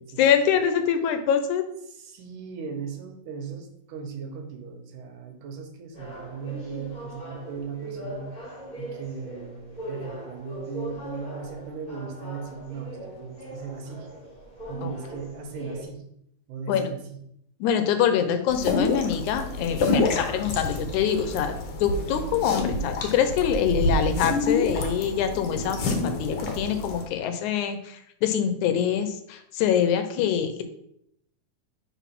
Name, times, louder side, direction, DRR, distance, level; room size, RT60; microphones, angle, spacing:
voice 1, 0.2-1.7 14.8-14.9 16.7-16.9 17.6-21.5 21.8-30.6, left 8 dB, 80° left, 8 dB, 2.0 m, -24 dB
voice 2, 1.9-8.3 8.8-14.1 14.7-16.0 16.5-17.2, right 5 dB, 80° right, 4 dB, 2.6 m, -37 dB
sound 1, 5.9-15.8, right 1 dB, 20° left, 1.2 m, -40 dB
sound 2, 18.5-27.0, left 2 dB, 60° left, 1.4 m, -28 dB
6.2 x 3.8 x 5.8 m, 0.73 s
omnidirectional pair, 3.6 m